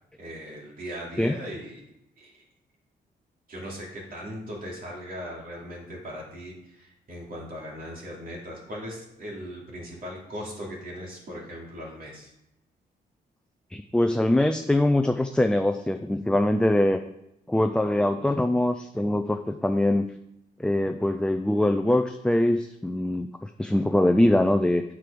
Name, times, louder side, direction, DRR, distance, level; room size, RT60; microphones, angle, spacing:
voice 1, 0.2-1.8 2.2-2.4 3.5-12.3, equal, 55° right, -2 dB, 2.9 m, -39 dB
voice 2, 13.7-17.0 17.5-20.1 20.6-24.8, left 1 dB, 5° left, 6 dB, 0.4 m, -23 dB
8.0 x 6.1 x 5.2 m, 0.85 s
cardioid pair, 115°, 18 cm